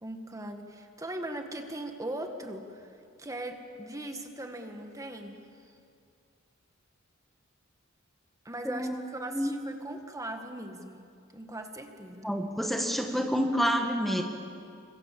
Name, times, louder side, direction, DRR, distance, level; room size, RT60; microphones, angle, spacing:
voice 1, 0.0-2.9 3.2-5.4 8.5-11.1 11.3-12.3, right 1 dB, 15° right, 5 dB, 1.7 m, -39 dB
voice 2, 8.7-9.0 9.3-9.5 12.2-14.2, equal, ahead, 3 dB, 1.6 m, -28 dB
29.0 x 24.5 x 7.6 m, 2.4 s
head